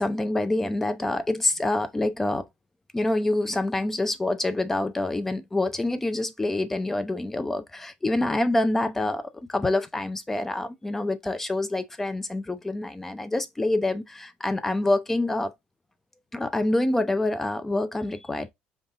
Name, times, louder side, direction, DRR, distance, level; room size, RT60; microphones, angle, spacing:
voice 1, 0.0-2.5 2.9-15.5 16.3-18.5, left 2 dB, 10° left, 0.4 m, -26 dB
5.4 x 2.4 x 3.8 m
cardioid pair, 170°, 4 cm